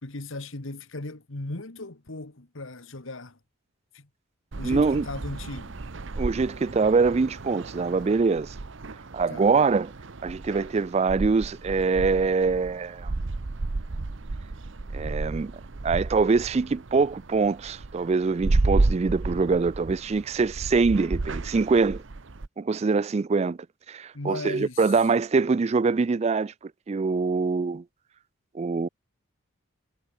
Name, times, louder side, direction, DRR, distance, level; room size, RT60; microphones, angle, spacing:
voice 1, 0.0-3.4 3.9-4.1 4.6-5.7 9.3-9.5 24.1-25.0, left 2 dB, 65° left, 1.7 m, -37 dB
sound 1, 4.5-22.5, right 2 dB, 60° right, 0.8 m, -32 dB
voice 2, 4.6-5.1 6.2-8.6 9.1-9.9 10.2-13.1 14.9-15.5 15.8-22.0 22.6-23.6 23.9-26.5 26.9-27.8 28.5-28.9, right 4 dB, 30° right, 0.3 m, -24 dB
head